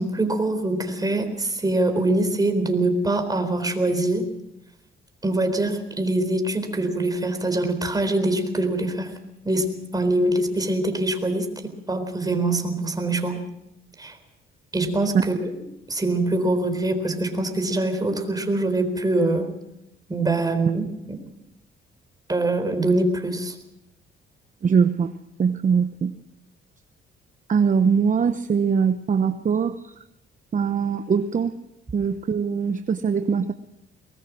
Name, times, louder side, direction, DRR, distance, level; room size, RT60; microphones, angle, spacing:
voice 1, 0.0-4.3 5.2-9.1 9.4-13.4 14.0-14.2 14.7-15.5 15.9-19.5 20.1-21.2 22.3-23.5, right 2 dB, 20° right, 7 dB, 4.1 m, -24 dB
voice 2, 24.6-25.1 25.4-26.1 27.5-29.9 30.5-31.5 31.9-33.5, right 6 dB, 40° right, 10 dB, 0.9 m, -22 dB
22.5 x 20.5 x 6.2 m, 0.85 s
cardioid pair, 90°, 20 cm